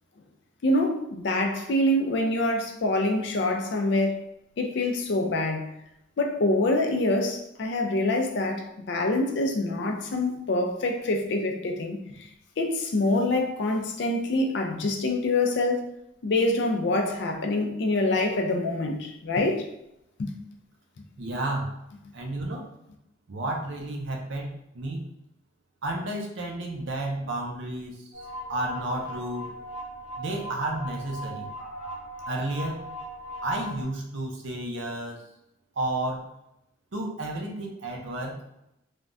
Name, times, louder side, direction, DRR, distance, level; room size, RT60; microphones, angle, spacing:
voice 1, 0.6-4.2 4.6-5.7 6.2-12.3 12.6-15.9 16.2-19.6 20.2-20.4, left 2 dB, 55° left, 0.4 m, -25 dB
voice 2, 21.2-21.8 22.1-22.7 23.3-25.0 25.8-28.2 28.5-29.5 30.2-31.5 32.3-32.8 33.4-35.2 35.8-36.3 36.9-38.4, right 1 dB, 60° right, 0.5 m, -31 dB
sound 1, 28.1-33.8, equal, 5° right, 0.8 m, -39 dB
3.4 x 2.2 x 2.5 m
head